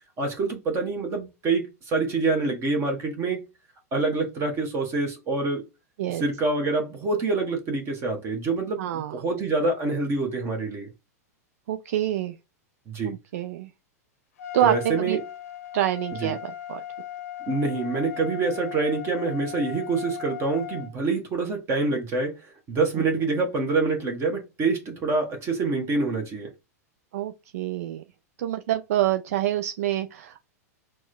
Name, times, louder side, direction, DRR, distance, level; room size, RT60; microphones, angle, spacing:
voice 1, 0.2-3.4 3.9-5.6 6.1-10.9 12.9-13.2 14.6-15.2 16.2-16.3 17.4-26.5, right 3 dB, 30° right, 1.1 m, -26 dB
voice 2, 8.8-9.1 11.7-12.4 13.0-13.7 14.5-15.2 15.7-16.8 23.0-23.1 27.1-28.0 28.4-30.4, right 12 dB, 60° right, 0.4 m, -26 dB
Trumpet, 14.4-20.9, left 13 dB, 65° left, 0.7 m, -38 dB
6.0 x 2.2 x 2.2 m
figure-of-eight pair, 100°, 9 cm